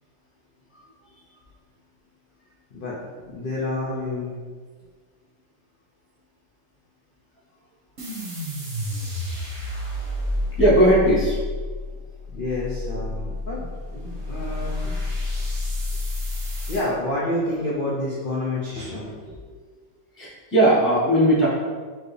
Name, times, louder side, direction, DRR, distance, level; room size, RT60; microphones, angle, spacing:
voice 1, 2.7-4.3 12.3-14.9 16.7-19.5, left 1 dB, 70° left, -6 dB, 0.5 m, -29 dB
sound 1, 8.0-16.9, left 2 dB, 50° right, 1.4 m, -29 dB
voice 2, 10.6-11.4 20.2-21.5, right 1 dB, 10° left, -8 dB, 1.1 m, -18 dB
4.5 x 3.1 x 3.2 m, 1.5 s
omnidirectional pair, 1.9 m